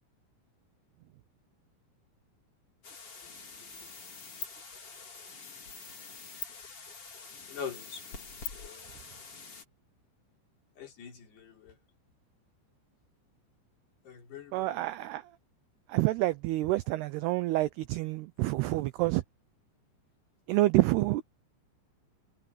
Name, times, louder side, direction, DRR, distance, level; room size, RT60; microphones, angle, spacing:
sound 1, 2.8-9.6, left 5 dB, 35° left, 3.7 m, -45 dB
voice 1, 6.0-6.5 7.5-8.2 8.5-9.1 10.8-11.8 14.0-14.9, left 7 dB, 60° left, 6.2 m, -45 dB
voice 2, 14.5-15.2 15.9-19.2 20.5-21.2, right 18 dB, 90° right, 2.3 m, -28 dB
omnidirectional pair, 5.5 m